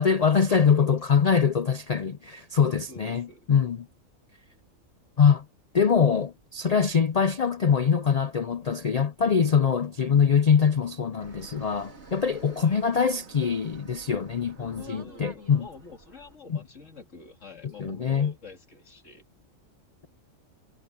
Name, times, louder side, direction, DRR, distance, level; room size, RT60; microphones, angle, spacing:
voice 1, 0.0-3.9 5.2-5.4 5.7-15.7 16.5-16.6 17.8-18.3, left 6 dB, 85° left, 0.3 m, -23 dB
voice 2, 2.9-3.5 12.6-12.8 14.6-19.3, left 3 dB, 60° left, 2.6 m, -47 dB
Fixed-wing aircraft airplane, 11.2-16.4, right 4 dB, 55° right, 2.6 m, -50 dB
omnidirectional pair, 1.4 m